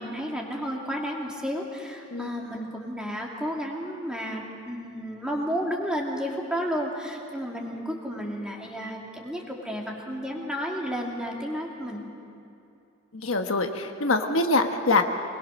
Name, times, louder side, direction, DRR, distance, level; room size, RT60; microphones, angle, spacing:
voice 1, 0.0-12.0, equal, 5° right, -1 dB, 2.5 m, -32 dB
voice 2, 13.1-15.0, left 3 dB, 75° left, 5 dB, 1.3 m, -24 dB
24.5 x 21.0 x 6.4 m, 2.7 s
head